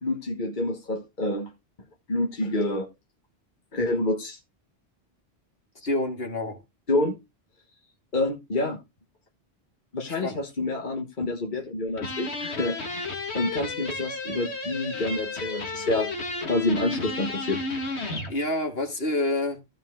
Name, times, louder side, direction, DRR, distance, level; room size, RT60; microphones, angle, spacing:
voice 1, 0.0-1.5 2.1-2.9 3.7-4.4 6.9-7.2 8.1-8.8 9.9-12.8 13.3-16.1 16.4-17.6, left 2 dB, 50° left, 1.7 m, -27 dB
voice 2, 5.8-6.6 10.1-10.4 18.3-19.6, left 1 dB, 65° left, 2.7 m, -28 dB
sound 1, 12.0-18.3, left 2 dB, 90° left, 2.3 m, -32 dB
15.5 x 5.3 x 3.8 m
omnidirectional pair, 1.1 m